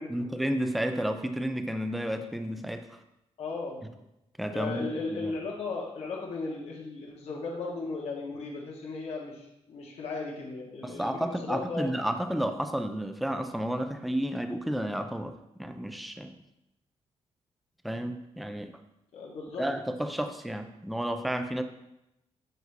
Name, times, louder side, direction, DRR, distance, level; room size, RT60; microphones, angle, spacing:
voice 1, 0.1-2.9 4.4-5.3 10.8-16.4 17.8-18.7 19.6-21.6, equal, ahead, 7 dB, 0.3 m, -31 dB
voice 2, 3.4-3.8 4.5-11.9 19.1-19.7, left 3 dB, 70° left, -3 dB, 1.3 m, -36 dB
8.0 x 2.7 x 4.6 m, 0.87 s
wide cardioid pair, 165°, 11 cm